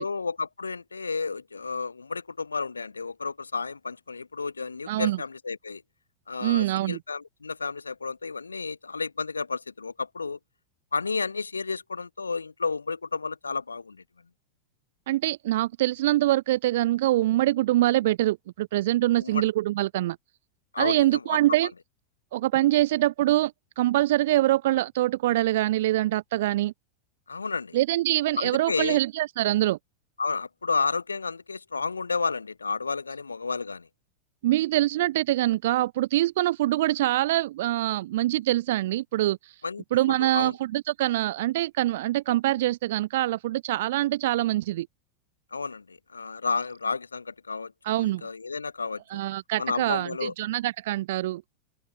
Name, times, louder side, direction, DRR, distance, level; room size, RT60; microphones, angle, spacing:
voice 1, 0.0-5.8 6.3-10.4 10.9-14.0 19.2-19.4 20.7-21.4 27.3-27.8 28.4-29.0 30.2-33.9 39.6-39.8 40.2-40.5 45.5-49.0 49.6-50.3, left 4 dB, 75° left, 1.3 m, -31 dB
voice 2, 4.9-5.2 6.4-7.0 15.1-20.2 20.8-21.7 22.3-26.7 27.7-29.8 34.4-39.6 39.9-44.9 47.8-48.2 49.1-51.4, right 15 dB, 55° right, 0.7 m, -24 dB
open air
figure-of-eight pair, 90°, 0 cm